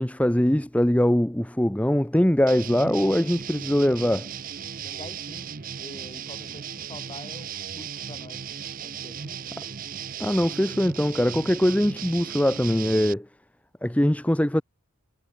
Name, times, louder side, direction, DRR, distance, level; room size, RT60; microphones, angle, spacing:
voice 1, 0.0-4.3 10.2-13.3 13.8-14.6, equal, 5° left, 0.6 m, -22 dB
sound 1, 2.5-13.1, right 8 dB, 40° right, 0.6 m, -36 dB
voice 2, 4.8-8.5 8.8-9.5, left 1 dB, 20° left, 2.6 m, -46 dB
head